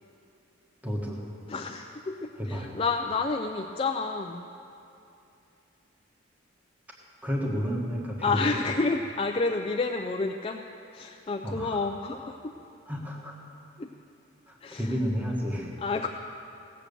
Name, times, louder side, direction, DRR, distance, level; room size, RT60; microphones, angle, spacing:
voice 1, 0.8-1.2 2.4-2.7 7.2-8.4 11.4-11.9 12.9-13.3 14.5-15.7, equal, 10° right, -2 dB, 1.3 m, -31 dB
voice 2, 1.5-4.5 8.2-10.6 10.9-12.5 13.8-13.9 14.6-15.0 15.8-16.1, left 3 dB, 25° left, 3 dB, 0.4 m, -30 dB
17.5 x 7.6 x 6.8 m, 2.7 s
head